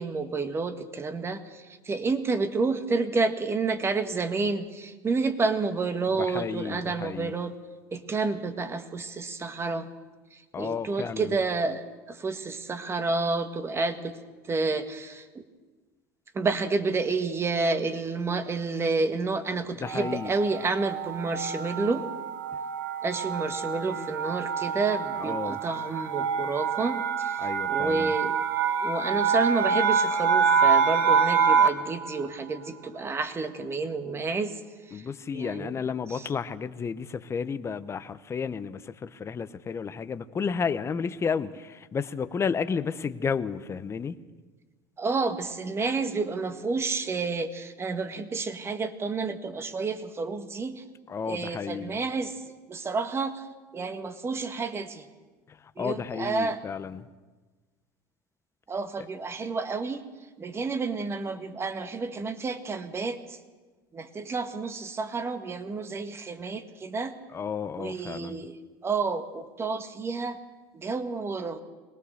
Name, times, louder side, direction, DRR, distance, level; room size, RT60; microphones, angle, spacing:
voice 1, 0.0-7.5 7.9-9.9 10.3-14.2 14.4-15.4 16.3-22.1 23.0-28.4 28.8-34.6 34.8-35.8 36.1-36.3 45.0-50.8 51.2-53.5 53.7-55.1 55.7-56.6 58.7-60.0 60.4-63.4 63.9-67.1 67.8-68.6 68.8-70.4 70.7-71.6, right 4 dB, 25° right, 9 dB, 1.7 m, -30 dB
voice 2, 6.2-7.3 10.5-11.3 19.8-20.3 25.2-25.6 27.4-28.1 34.9-44.2 51.1-52.0 55.5-57.1 67.3-68.4, left 6 dB, 25° left, 12 dB, 0.9 m, -32 dB
sound 1, 19.8-31.9, right 6 dB, 90° right, 1.5 m, -26 dB
22.0 x 18.5 x 6.7 m, 1.3 s
supercardioid pair, 95°, 10 cm